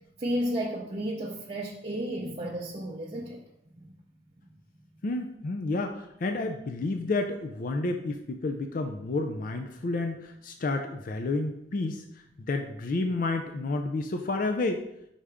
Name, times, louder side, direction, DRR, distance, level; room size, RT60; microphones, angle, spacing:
voice 1, 0.2-3.4 3.8-3.9, equal, 35° right, -3 dB, 0.6 m, -32 dB
voice 2, 5.0-12.0 12.4-14.8, left 2 dB, 50° left, 5 dB, 0.4 m, -30 dB
5.6 x 3.5 x 4.8 m, 0.81 s
head